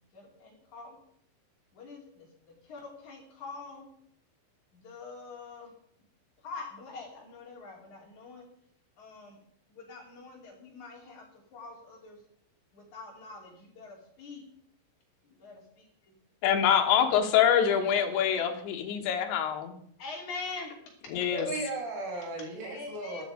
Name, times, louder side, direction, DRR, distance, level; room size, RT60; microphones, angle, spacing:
voice 1, 0.1-1.0 1.7-2.3 2.7-3.8 4.7-5.7 6.4-8.5 9.0-9.4 9.7-11.3 11.5-12.2 12.7-14.4 15.4-15.6 17.8-18.5 20.0-20.7 22.6-23.2, left 4 dB, 45° left, -1 dB, 4.0 m, -44 dB
voice 2, 16.4-19.7 21.1-21.5, left 9 dB, 75° left, 3 dB, 3.6 m, -25 dB
voice 3, 21.3-23.2, right 2 dB, 90° right, 0 dB, 5.9 m, -36 dB
12.5 x 12.0 x 5.0 m, 0.69 s
omnidirectional pair, 5.3 m